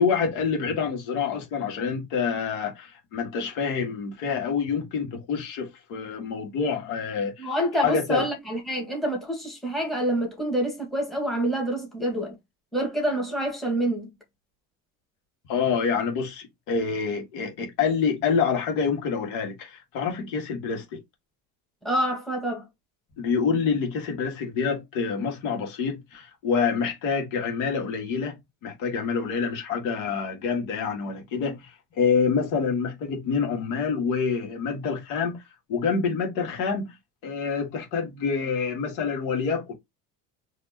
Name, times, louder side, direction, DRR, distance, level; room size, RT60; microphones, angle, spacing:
voice 1, 0.0-7.5 7.8-8.3 15.5-21.0 23.2-28.4 28.6-35.4 35.7-36.9 37.2-39.7, left 5 dB, 70° left, 1.8 m, -27 dB
voice 2, 7.4-12.3 12.7-14.1 21.8-22.6, right 1 dB, ahead, 1.6 m, -27 dB
4.3 x 2.9 x 2.8 m
cardioid pair, 155°, 35 cm